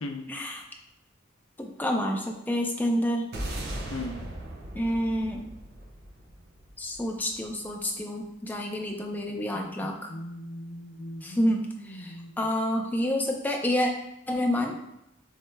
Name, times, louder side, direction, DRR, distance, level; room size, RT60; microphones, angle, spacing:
voice 1, 0.3-0.6 1.6-3.3 4.7-5.5 6.8-10.1 11.2-13.9 14.3-14.7, equal, 10° left, 1 dB, 0.4 m, -28 dB
sound 1, 3.3-7.8, right 1 dB, 50° right, 0.8 m, -38 dB
voice 2, 9.3-12.3, left 2 dB, 80° left, 4 dB, 0.6 m, -39 dB
7.1 x 3.3 x 2.2 m, 0.84 s
head